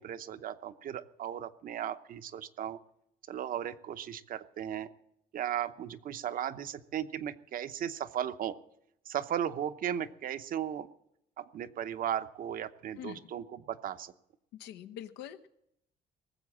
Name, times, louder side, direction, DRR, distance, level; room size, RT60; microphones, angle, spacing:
voice 1, 0.0-2.8 3.3-4.9 5.3-8.6 9.1-10.9 11.4-14.1, right 10 dB, 55° right, 11 dB, 0.8 m, -36 dB
voice 2, 14.6-15.5, left 10 dB, 90° left, 8 dB, 1.0 m, -44 dB
19.0 x 7.6 x 7.3 m, 0.77 s
cardioid pair, 110°, 17 cm